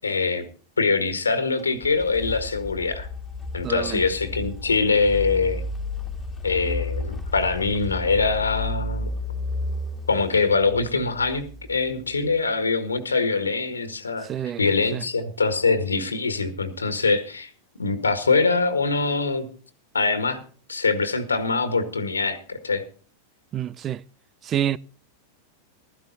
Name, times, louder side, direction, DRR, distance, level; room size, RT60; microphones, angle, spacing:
voice 1, 0.0-0.4 0.8-3.1 3.5-5.6 6.4-9.1 10.1-14.3 14.6-17.5 17.8-19.5 19.9-20.4 20.7-22.8, left 4 dB, 75° left, 1.7 m, -23 dB
sound 1, 1.6-12.4, left 2 dB, 10° left, 2.1 m, -33 dB
voice 2, 3.6-4.0 14.2-14.6 14.9-15.0 23.5-24.0 24.4-24.8, right 10 dB, 30° right, 0.5 m, -27 dB
15.5 x 13.5 x 4.1 m
figure-of-eight pair, 90°, 0 cm